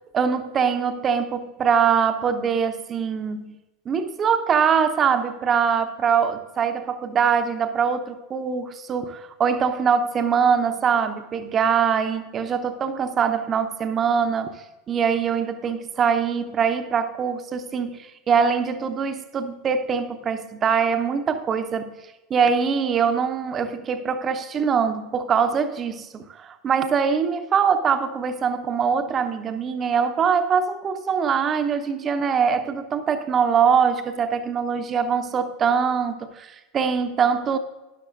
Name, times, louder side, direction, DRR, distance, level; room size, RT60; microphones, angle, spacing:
voice 1, 0.1-3.6 3.9-14.5 14.9-21.9 22.3-37.6, right 6 dB, 30° right, 9 dB, 0.9 m, -23 dB
12.5 x 11.5 x 2.6 m, 1.1 s
figure-of-eight pair, 80°, 0 cm